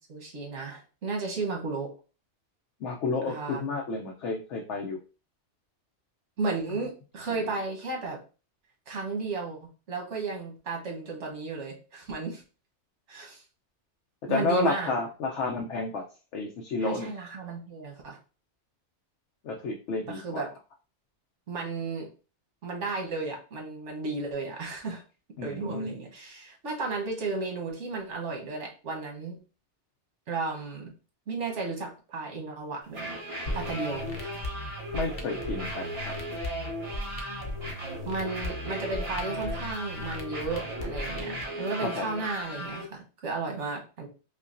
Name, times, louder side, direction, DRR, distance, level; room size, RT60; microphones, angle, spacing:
voice 1, 0.1-1.9 3.3-3.7 6.4-8.2 8.9-9.6 9.9-12.4 13.1-13.4 14.3-14.9 16.8-18.2 20.1-20.5 21.5-22.1 22.6-25.0 25.4-29.4 30.3-30.9 31.3-33.2 33.5-34.1 38.1-44.1, right 3 dB, 80° right, 1 dB, 1.3 m, -34 dB
voice 2, 2.8-5.0 14.3-16.0 16.3-17.1 19.4-20.4 25.4-25.9 34.9-36.1 41.8-42.1, left 3 dB, 80° left, 1 dB, 0.9 m, -30 dB
sound 1, 32.8-42.8, equal, 60° right, 1.7 m, -37 dB
sound 2, 33.5-41.4, left 2 dB, 50° left, 0.8 m, -38 dB
5.1 x 2.2 x 2.5 m, 0.34 s
omnidirectional pair, 1.2 m